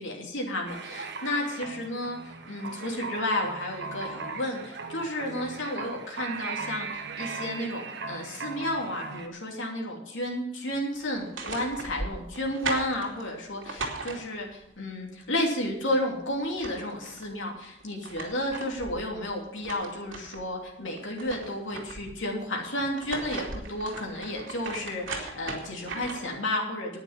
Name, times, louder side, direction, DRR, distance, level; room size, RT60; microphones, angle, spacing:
voice 1, 0.0-27.0, left 1 dB, 75° left, 0 dB, 3.0 m, -32 dB
sound 1, 0.7-9.3, right 4 dB, 60° right, 1.3 m, -38 dB
sound 2, 11.1-14.7 16.1-16.2 16.4-17.3 17.8-20.5 20.9-22.2 22.8-26.4, right 3 dB, 85° right, 2.6 m, -38 dB
10.5 x 9.7 x 7.2 m, 0.79 s
head